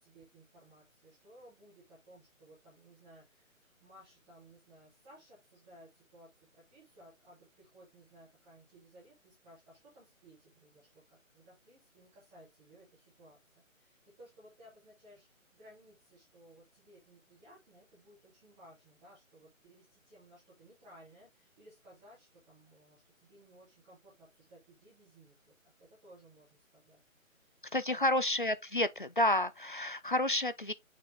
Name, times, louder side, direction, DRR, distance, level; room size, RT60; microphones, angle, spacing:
voice 1, 0.0-28.1, right 1 dB, ahead, 0.8 m, -59 dB
voice 2, 27.7-30.7, left 1 dB, 40° left, 0.4 m, -30 dB
6.6 x 4.1 x 3.4 m
figure-of-eight pair, 155°, 41 cm